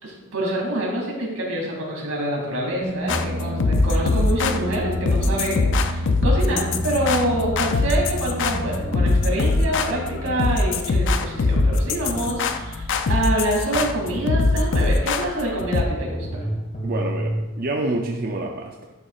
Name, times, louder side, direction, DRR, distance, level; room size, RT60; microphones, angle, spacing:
voice 1, 0.0-16.4, right 1 dB, 90° right, -2 dB, 2.5 m, -26 dB
sound 1, 2.6-11.4, equal, 25° right, 0.9 m, -30 dB
sound 2, 3.1-15.8, left 3 dB, 60° left, 0.5 m, -22 dB
sound 3, 6.7-9.3 11.1-14.7 15.7-17.4, equal, 40° left, 1.7 m, -32 dB
voice 2, 16.8-18.9, right 2 dB, 45° right, 1 dB, 0.5 m, -27 dB
11.0 x 5.6 x 2.4 m, 1.1 s
head